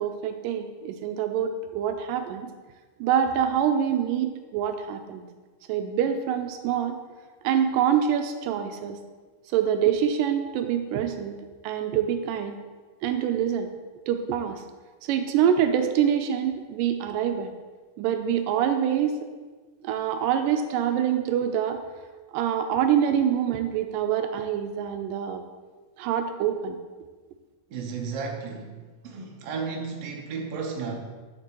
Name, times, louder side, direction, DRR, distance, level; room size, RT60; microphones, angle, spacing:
voice 1, 0.0-2.5 3.0-5.2 5.7-7.0 7.4-9.0 9.5-11.4 11.6-12.6 13.0-13.7 14.1-14.6 15.1-17.5 18.0-19.2 19.8-21.8 22.3-25.4 26.0-26.8, right 9 dB, 85° right, 7 dB, 2.1 m, -25 dB
voice 2, 27.7-30.9, right 5 dB, 65° right, 1 dB, 1.7 m, -33 dB
9.9 x 6.7 x 3.0 m, 1.4 s
omnidirectional pair, 3.8 m